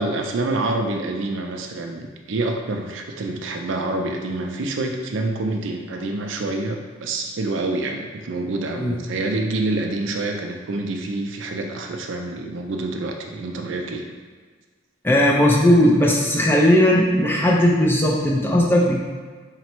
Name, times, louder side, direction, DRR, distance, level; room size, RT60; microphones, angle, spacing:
voice 1, 0.0-14.1, right 2 dB, 85° right, 3 dB, 0.4 m, -27 dB
voice 2, 15.0-19.0, left 1 dB, 10° left, -3 dB, 0.5 m, -17 dB
4.0 x 2.2 x 4.4 m, 1.5 s
head